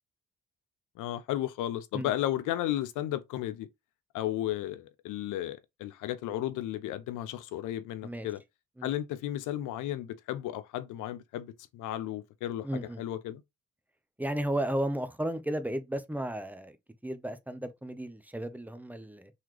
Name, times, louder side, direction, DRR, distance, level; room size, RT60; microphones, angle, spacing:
voice 1, 1.0-3.7 4.1-8.4 8.8-13.4, left 13 dB, 90° left, 0.6 m, -34 dB
voice 2, 12.6-13.0 14.2-16.8 17.0-19.3, right 1 dB, 5° right, 0.6 m, -34 dB
3.9 x 3.0 x 3.0 m
cardioid pair, 90°, 30 cm